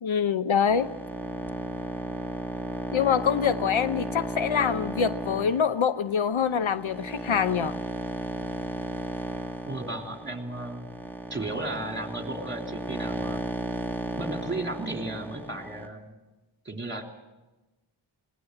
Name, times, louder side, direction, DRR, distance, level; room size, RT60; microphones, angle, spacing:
voice 1, 0.0-0.9 2.9-7.8, left 7 dB, 70° left, 13 dB, 0.8 m, -25 dB
sound 1, 0.7-15.9, equal, 5° left, 2.6 m, -35 dB
voice 2, 9.7-10.9 11.3-13.4 14.2-16.2 16.6-17.0, right 2 dB, 20° right, 3 dB, 3.1 m, -34 dB
21.5 x 18.0 x 7.8 m, 1.1 s
wide cardioid pair, 50°, 49 cm